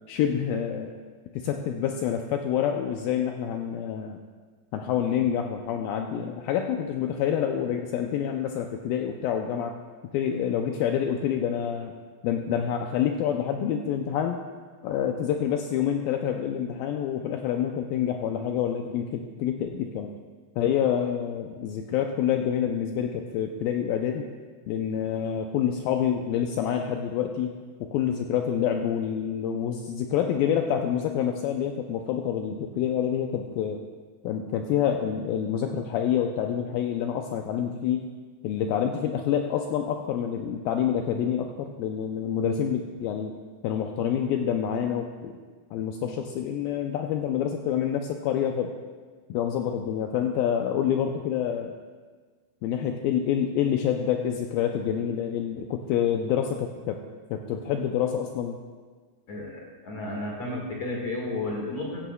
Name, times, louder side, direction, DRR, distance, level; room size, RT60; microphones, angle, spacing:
voice 1, 0.1-1.0 1.4-4.2 4.7-9.8 10.1-11.9 12.2-14.4 14.8-20.1 20.6-24.3 24.7-27.5 27.8-33.8 34.2-38.1 38.4-43.3 43.6-45.3 45.7-48.7 49.3-51.7 52.6-57.0 57.3-58.6, left 9 dB, 85° left, 4 dB, 2.0 m, -27 dB
voice 2, 59.3-62.0, left 2 dB, 50° left, -2 dB, 2.3 m, -32 dB
15.5 x 15.0 x 2.3 m, 1.5 s
omnidirectional pair, 4.8 m